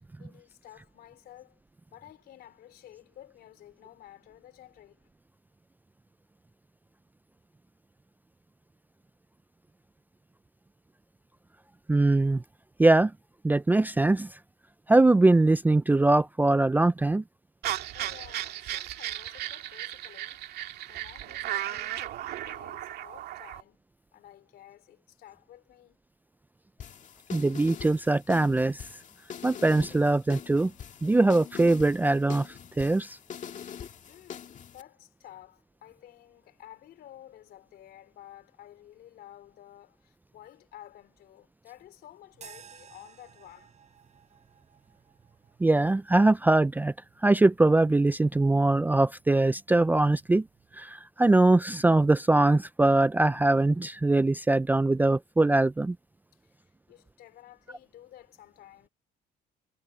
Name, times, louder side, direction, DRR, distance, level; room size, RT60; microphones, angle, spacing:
voice 1, 0.2-1.6 1.9-5.1 17.9-20.4 20.9-23.8 24.1-26.0 34.1-43.7 56.4-56.5 56.9-58.9, left 12 dB, 70° left, 3.9 m, -52 dB
voice 2, 11.9-12.4 12.8-13.1 13.4-14.3 14.9-17.2 27.3-28.8 29.4-30.7 31.0-32.5 32.8-33.2 45.6-46.9 47.2-50.5 50.7-56.0, right 2 dB, 10° right, 0.4 m, -22 dB
sound 1, 17.6-23.6, right 13 dB, 75° right, 2.3 m, -35 dB
sound 2, 26.8-34.8, left 8 dB, 45° left, 1.9 m, -43 dB
sound 3, 42.3-50.9, right 8 dB, 45° right, 6.0 m, -57 dB
cardioid pair, 110°, 17 cm